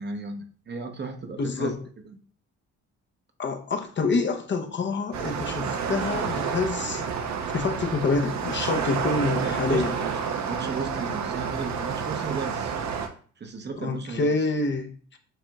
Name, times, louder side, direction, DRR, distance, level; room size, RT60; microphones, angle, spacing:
voice 1, 0.0-1.7 2.0-2.2 9.7-12.8 13.4-14.3, right 4 dB, 35° right, 6 dB, 0.8 m, -35 dB
voice 2, 1.4-1.8 3.4-7.1 7.5-9.9 13.8-15.2, left 3 dB, 40° left, 5 dB, 0.6 m, -27 dB
sound 1, 5.1-13.1, right 6 dB, 65° right, 0.7 m, -29 dB
7.7 x 2.9 x 2.3 m, 0.44 s
cardioid pair, 90°, 30 cm